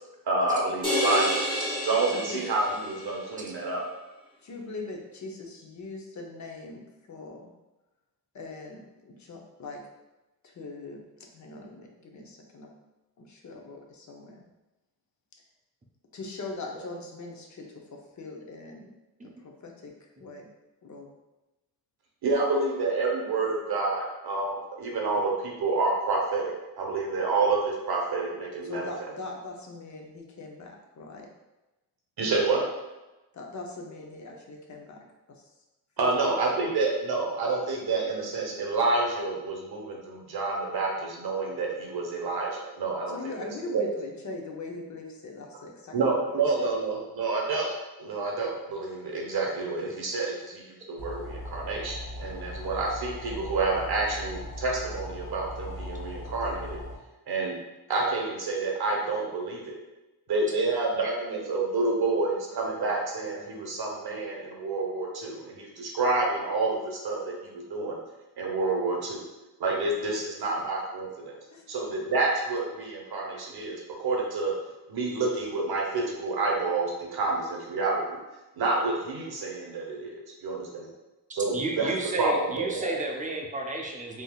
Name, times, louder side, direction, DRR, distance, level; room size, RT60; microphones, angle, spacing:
voice 1, 0.3-1.5 1.8-3.8 22.2-28.9 32.2-32.6 36.0-43.3 43.7-43.9 45.9-56.8 57.3-57.6 57.9-59.8 60.3-68.0 68.4-69.2 69.6-71.3 71.7-74.5 74.9-78.2 78.6-80.9 81.3-81.9 82.2-82.9, right 3 dB, 65° right, -1 dB, 0.9 m, -28 dB
sound 1, 0.8-3.2, equal, 10° left, 1.0 m, -29 dB
voice 2, 2.1-2.4 4.4-6.8 7.1-7.5 8.3-9.8 10.4-12.7 13.2-14.4 16.1-17.6 18.2-18.9 19.2-19.9 20.2-20.5 20.8-21.1 28.6-31.3 33.3-35.0 35.3-35.4 36.3-36.7 43.1-46.3 46.6-46.7 70.4-70.5 71.5-71.7 81.8-81.9, left 3 dB, 45° left, 1 dB, 0.6 m, -41 dB
sound 2, 51.0-56.9, left 1 dB, 90° left, 0.9 m, -39 dB
voice 3, 81.5-84.2, right 2 dB, 20° right, 0 dB, 0.5 m, -32 dB
3.5 x 2.7 x 2.3 m, 1.0 s
cardioid pair, 90°, 41 cm